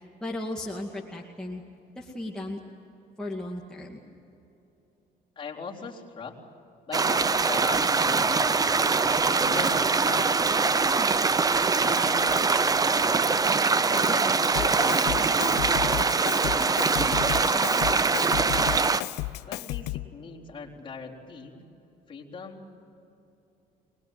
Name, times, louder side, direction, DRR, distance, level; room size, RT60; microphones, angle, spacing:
voice 1, 0.2-1.6 2.0-2.6 3.2-4.0, left 1 dB, 5° left, -2 dB, 2.2 m, -35 dB
voice 2, 5.4-6.4 6.9-8.9 9.3-10.5 11.8-13.5 13.9-16.9 17.4-18.7 19.4-21.7 22.1-22.9, left 4 dB, 30° left, -3 dB, 3.9 m, -40 dB
sound 1, 6.9-19.0, right 4 dB, 20° right, 0.7 m, -23 dB
Drum kit, 14.5-20.2, left 18 dB, 80° left, 0.5 m, -33 dB
24.0 x 21.0 x 9.4 m, 2.9 s
cardioid pair, 110°, 17 cm